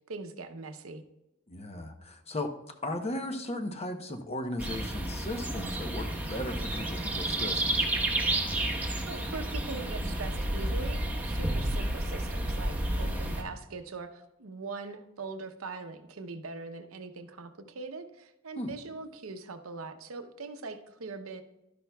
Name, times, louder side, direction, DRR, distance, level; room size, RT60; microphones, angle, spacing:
voice 1, 0.1-1.0 9.0-21.4, right 3 dB, 75° right, 7 dB, 0.8 m, -41 dB
voice 2, 1.5-2.5 2.8-8.0 18.6-18.7, left 1 dB, 30° left, 6 dB, 0.8 m, -36 dB
sound 1, 4.6-13.4, right 1 dB, 10° right, 1.1 m, -31 dB
12.0 x 10.5 x 2.3 m, 0.91 s
head